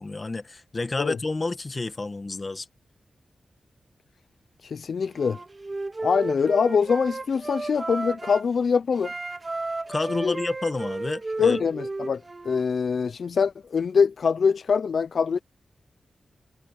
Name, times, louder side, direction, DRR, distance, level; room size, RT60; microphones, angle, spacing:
voice 1, 0.0-2.6 9.9-11.6, left 3 dB, 30° left, 1.5 m, -30 dB
voice 2, 4.6-5.4 6.0-9.1 10.1-10.4 11.4-15.4, left 6 dB, 70° left, 0.4 m, -24 dB
Wind instrument woodwind instrument, 5.1-8.5 9.0-12.6, right 2 dB, 30° right, 1.8 m, -33 dB
wide cardioid pair, 130°, 0 cm